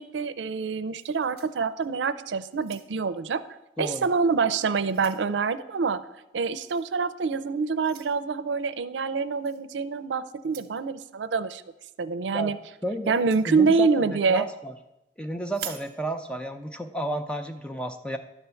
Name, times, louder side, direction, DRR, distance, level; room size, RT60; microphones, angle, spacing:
voice 1, 0.0-3.4 3.8-6.1 6.3-11.6 12.0-12.6 13.1-14.5, right 4 dB, 90° right, 12 dB, 0.5 m, -26 dB
sound 1, 0.9-2.1 2.5-3.2 4.0-4.2 4.6-5.3 6.7-6.9 7.8-8.1 9.4-9.6 10.4-10.8 13.0-13.5 15.5-15.9, right 10 dB, 60° right, 0.8 m, -44 dB
voice 2, 12.8-13.2 13.4-14.7 15.2-18.2, right 1 dB, 5° left, 7 dB, 0.5 m, -32 dB
11.0 x 4.5 x 6.9 m, 0.93 s
head